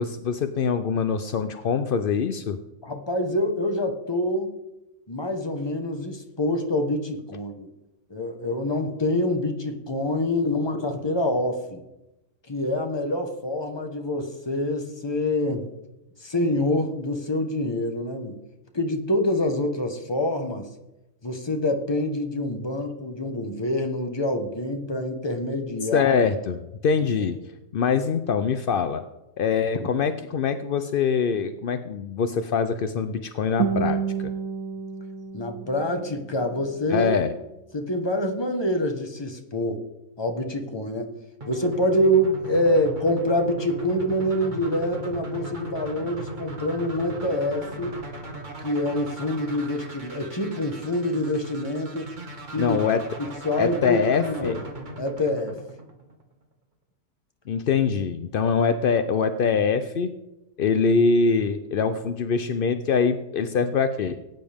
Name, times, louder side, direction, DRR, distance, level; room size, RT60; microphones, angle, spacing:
voice 1, 0.0-2.6 25.9-27.4 27.7-29.0 29.4-34.3 36.9-37.3 52.6-53.0 53.6-54.5 57.5-60.2 60.6-64.2, left 5 dB, 65° left, 10 dB, 0.5 m, -24 dB
voice 2, 2.8-4.6 5.1-7.7 8.1-11.8 12.5-15.7 16.2-18.4 18.7-20.6 21.2-26.1 29.7-29.9 35.3-37.1 37.7-39.8 40.2-41.1 41.5-48.0 48.6-52.1 52.5-52.8 53.2-54.6 55.0-55.6, left 1 dB, 20° left, 4 dB, 1.1 m, -26 dB
Guitar, 33.6-36.6, right 6 dB, 65° right, 1.3 m, -29 dB
sound 1, 41.4-56.3, right 1 dB, 30° right, 1.5 m, -38 dB
18.5 x 9.2 x 3.5 m, 0.96 s
omnidirectional pair, 1.6 m